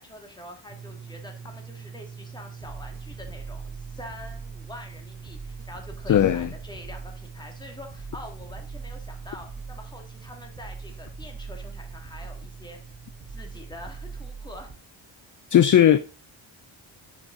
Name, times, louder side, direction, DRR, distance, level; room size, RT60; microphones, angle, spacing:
voice 1, 0.0-12.8 13.3-14.7, left 1 dB, 10° left, 2.3 m, -45 dB
sound 1, 0.7-14.3, right 6 dB, 10° right, 1.5 m, -45 dB
sound 2, 2.6-14.7, right 4 dB, 50° right, 5.4 m, -41 dB
voice 2, 6.1-6.5 15.5-16.0, left 10 dB, 40° left, 0.5 m, -17 dB
9.8 x 5.3 x 3.9 m
cardioid pair, 105°, 47 cm